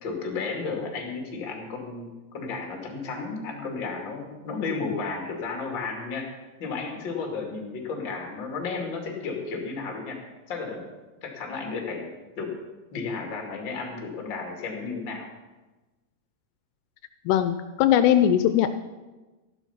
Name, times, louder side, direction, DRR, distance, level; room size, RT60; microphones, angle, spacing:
voice 1, 0.0-6.3 6.6-10.2 10.5-10.8 11.2-12.5 12.9-15.3, left 4 dB, 35° left, 1 dB, 2.4 m, -33 dB
voice 2, 17.3-18.7, left 10 dB, 85° left, 9 dB, 2.6 m, -20 dB
13.5 x 11.5 x 5.7 m, 1.2 s
omnidirectional pair, 4.9 m